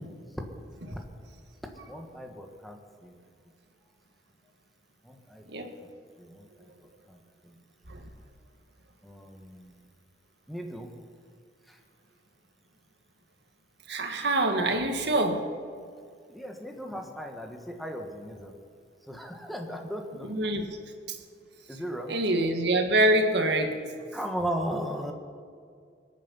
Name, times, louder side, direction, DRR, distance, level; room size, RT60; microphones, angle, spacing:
voice 1, 1.9-3.1 5.0-5.6 6.2-7.6 9.0-9.8 10.5-10.9 11.7-11.8 16.3-18.5 19.1-20.3 21.7-22.2 24.1-25.1, equal, ahead, 2 dB, 1.5 m, -37 dB
voice 2, 13.9-15.4 20.3-20.7 21.1-21.2 22.1-23.8, right 1 dB, 70° right, 5 dB, 1.8 m, -25 dB
21.5 x 9.2 x 5.5 m, 2.2 s
head